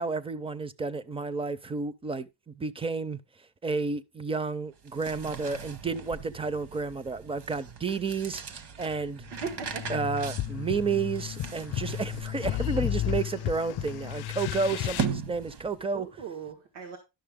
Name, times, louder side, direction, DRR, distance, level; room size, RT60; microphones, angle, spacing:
voice 1, 0.0-3.2 3.6-9.2 9.9-16.1, right 4 dB, 15° right, 0.4 m, -31 dB
sound 1, 4.7-15.9, right 6 dB, 55° right, 1.2 m, -40 dB
sound 2, 9.3-15.1, left 14 dB, 55° left, 0.5 m, -33 dB
voice 2, 9.3-10.0 15.9-17.0, right 6 dB, 90° right, 1.8 m, -38 dB
11.5 x 6.4 x 3.6 m
cardioid pair, 140°, 47 cm